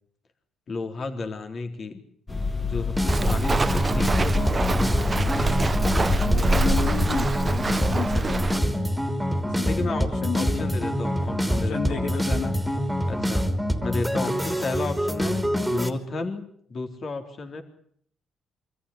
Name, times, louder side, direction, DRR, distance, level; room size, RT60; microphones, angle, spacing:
voice 1, 0.7-2.0 2.6-5.5 9.7-10.1 10.3-12.2 13.1-13.5 13.8-16.4 16.7-17.6, left 3 dB, 50° left, 5 dB, 3.8 m, -32 dB
sound 1, 2.3-7.3, left 5 dB, 25° left, 1.6 m, -29 dB
sound 2, 3.0-15.9, equal, 5° right, 3.2 m, -26 dB
Walk footsteps, 3.1-8.6, right 3 dB, 25° right, 0.9 m, -26 dB
voice 2, 6.2-8.7 9.4-10.7 11.5-12.6, left 6 dB, 70° left, 1 dB, 3.0 m, -32 dB
25.0 x 14.0 x 9.9 m, 0.65 s
cardioid pair, 90°, 0 cm